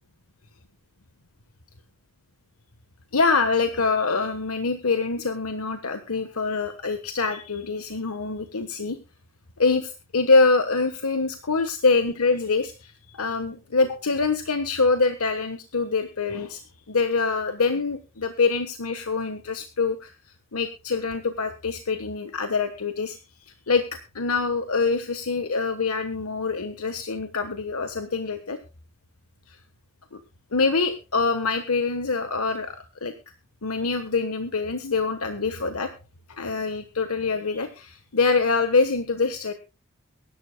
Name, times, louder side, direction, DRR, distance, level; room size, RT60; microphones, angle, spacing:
voice 1, 3.1-9.0 9.6-16.6 16.9-20.1 20.5-23.2 23.7-23.8 24.1-28.6 29.5-29.6 30.1-30.2 30.5-33.1 33.6-35.9 36.3-39.5, left 4 dB, 85° left, 8 dB, 1.3 m, -25 dB
23.0 x 12.0 x 2.3 m, 0.30 s
head